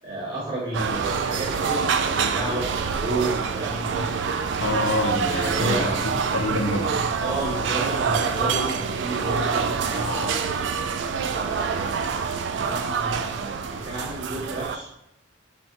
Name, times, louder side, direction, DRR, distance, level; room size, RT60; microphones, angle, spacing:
voice 1, 0.0-4.0 5.3-6.0 7.2-10.5 11.2-11.9 12.5-14.9, right 1 dB, 20° right, -7 dB, 1.4 m, -31 dB
sound 1, 0.7-14.8, right 6 dB, 65° right, 0.3 m, -26 dB
voice 2, 4.6-7.1, left 2 dB, 75° left, 5 dB, 0.6 m, -27 dB
4.1 x 2.7 x 3.8 m, 0.85 s
head